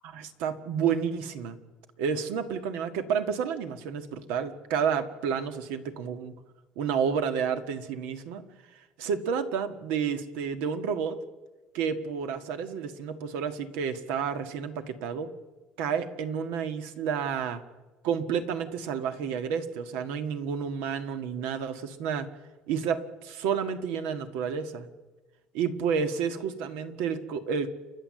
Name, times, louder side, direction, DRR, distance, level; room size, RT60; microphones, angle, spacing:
voice 1, 0.1-1.6 2.0-6.3 6.8-8.4 9.0-11.2 11.7-15.3 15.8-17.6 18.0-22.3 22.7-24.9 25.5-27.7, right 7 dB, 85° right, 9 dB, 1.7 m, -30 dB
29.5 x 11.5 x 7.7 m, 1.2 s
cardioid pair, 150°, 3 cm